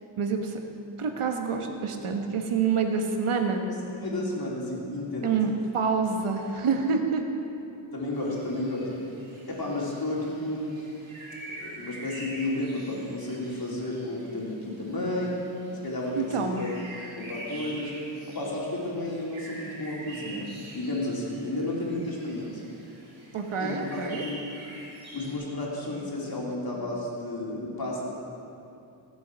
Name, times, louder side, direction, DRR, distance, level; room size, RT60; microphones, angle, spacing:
voice 1, 0.2-0.6 1.0-3.6 5.2-7.2 16.2-16.6 23.3-24.2, right 5 dB, 90° right, 4 dB, 1.3 m, -27 dB
voice 2, 3.7-5.4 6.1-6.2 7.9-8.9 9.4-10.9 11.5-15.3 15.8-16.7 17.2-17.9 18.3-22.6 23.6-24.4 25.1-28.1, left 1 dB, 45° left, -4 dB, 3.3 m, -32 dB
sound 1, 8.1-25.3, right 1 dB, 75° right, 3.2 m, -45 dB
16.5 x 7.2 x 6.2 m, 2.8 s
wide cardioid pair, 75°, 49 cm